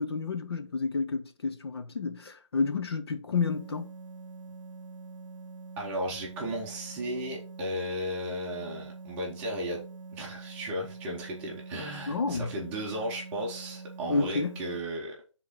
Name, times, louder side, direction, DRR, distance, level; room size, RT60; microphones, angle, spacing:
voice 1, 0.0-3.9 12.1-12.5 14.1-14.6, left 4 dB, 55° left, 0.8 m, -30 dB
sound 1, 3.4-14.8, right 4 dB, 85° right, 0.7 m, -45 dB
voice 2, 5.8-9.8 10.1-15.1, equal, 10° right, 0.9 m, -35 dB
4.7 x 3.7 x 5.4 m
hypercardioid pair, 165°, 16 cm